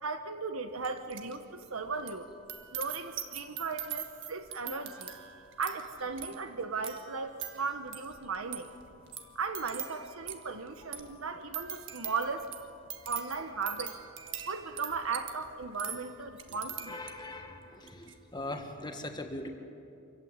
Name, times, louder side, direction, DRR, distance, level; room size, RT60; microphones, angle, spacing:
voice 1, 0.0-2.3 2.7-5.1 5.6-8.7 9.3-12.5 13.1-14.0 14.5-17.0, right 4 dB, 80° right, 8 dB, 1.1 m, -36 dB
sound 1, 0.8-1.4 1.6-17.4 17.8-18.1, right 9 dB, 60° right, 1.7 m, -43 dB
voice 2, 16.9-19.5, left 2 dB, 20° left, 4 dB, 1.7 m, -41 dB
26.0 x 15.5 x 9.5 m, 2.7 s
head